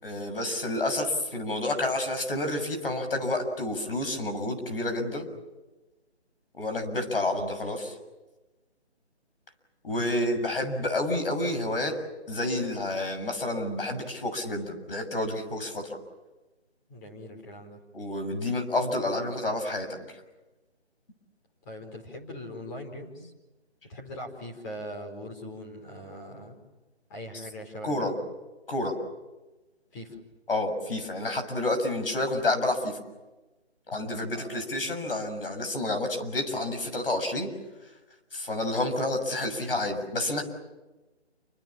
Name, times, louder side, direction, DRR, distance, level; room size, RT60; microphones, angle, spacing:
voice 1, 0.0-5.3 6.5-8.0 9.8-12.0 12.3-15.9 17.9-20.2 27.8-28.1 28.7-28.9 30.5-33.0 33.9-37.5 38.3-40.4, left 2 dB, 55° left, 6 dB, 6.8 m, -29 dB
voice 2, 16.9-17.8 21.6-23.3 23.9-26.6 27.1-28.1 29.9-30.2 34.3-34.7, left 1 dB, 15° left, 2 dB, 4.6 m, -41 dB
29.0 x 26.0 x 7.4 m, 1.1 s
figure-of-eight pair, 160°, 33 cm